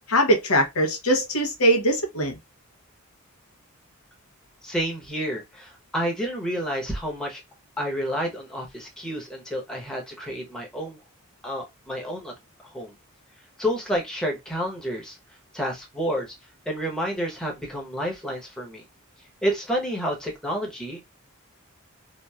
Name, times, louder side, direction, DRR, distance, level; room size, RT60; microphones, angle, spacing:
voice 1, 0.1-2.4, equal, 90° left, 0.9 m, -21 dB
voice 2, 4.6-7.4 7.8-11.0 11.4-12.3 12.7-12.9 13.6-15.2 15.5-16.3 16.7-18.8 19.4-21.0, equal, 5° left, 0.8 m, -29 dB
3.0 x 2.5 x 2.3 m
head